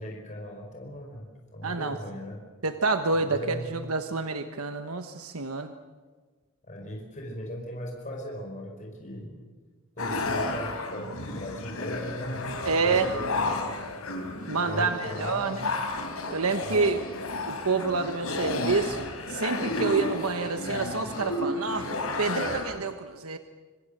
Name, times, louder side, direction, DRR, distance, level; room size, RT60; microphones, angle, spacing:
voice 1, 0.0-2.4 3.1-3.6 6.7-9.3 10.0-12.4 12.7-13.9 14.6-15.6 16.6-17.0, equal, 35° left, 0 dB, 4.9 m, -38 dB
voice 2, 1.6-2.0 2.6-5.7 12.7-13.1 14.5-15.7 16.3-17.0 17.5-21.9 22.2-23.4, right 4 dB, 85° right, 8 dB, 1.3 m, -28 dB
sound 1, 10.0-22.6, left 2 dB, 80° left, 4.5 m, -32 dB
25.5 x 25.5 x 6.7 m, 1.4 s
head